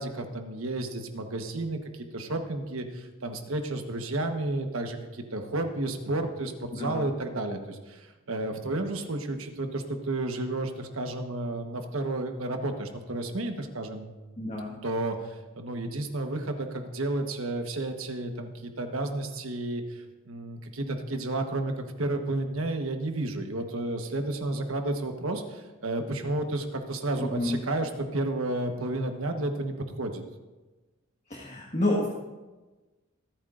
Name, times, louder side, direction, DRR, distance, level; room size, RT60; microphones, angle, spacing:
voice 1, 0.0-14.1 14.8-30.2, right 2 dB, 80° right, 5 dB, 1.3 m, -32 dB
voice 2, 6.7-7.1 14.4-14.8 27.2-27.6 31.3-32.1, left 1 dB, 35° left, -3 dB, 1.6 m, -29 dB
25.0 x 9.0 x 2.6 m, 1.2 s
head